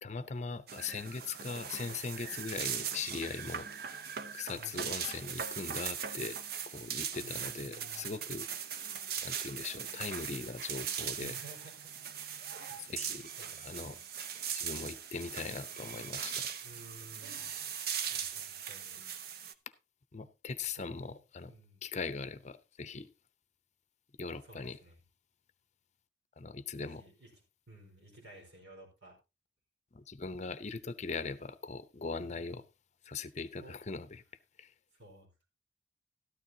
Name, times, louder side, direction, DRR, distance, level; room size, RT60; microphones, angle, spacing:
voice 1, 0.0-6.4 6.7-8.4 9.2-11.3 12.8-13.3 13.6-14.0 14.5-16.5 20.1-21.5 21.8-23.1 24.2-24.8 26.4-27.0 29.9-32.6 33.0-34.2 34.6-34.7, left 4 dB, 40° left, 0.7 m, -40 dB
sound 1, 0.7-19.5, right 8 dB, 60° right, 0.8 m, -40 dB
voice 2, 4.5-5.0 7.2-8.2 11.2-11.9 12.4-12.9 13.4-14.0 16.6-17.6 18.1-19.1 20.7-21.1 21.5-21.8 24.4-25.0 26.8-27.3 27.7-29.2 32.2-32.6 33.6-33.8 34.9-35.5, right 1 dB, 75° right, 4.6 m, -54 dB
13.5 x 12.0 x 2.8 m
head